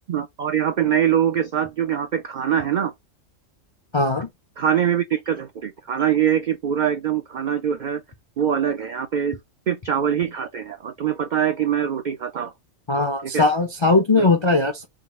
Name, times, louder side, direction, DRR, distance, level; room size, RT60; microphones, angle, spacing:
voice 1, 0.1-2.9 4.6-8.0 8.4-9.4 9.7-12.5 13.2-13.4, right 9 dB, 75° right, 0.4 m, -23 dB
voice 2, 3.9-4.3 12.9-14.9, left 3 dB, 50° left, 0.3 m, -19 dB
3.7 x 2.3 x 4.1 m
omnidirectional pair, 1.3 m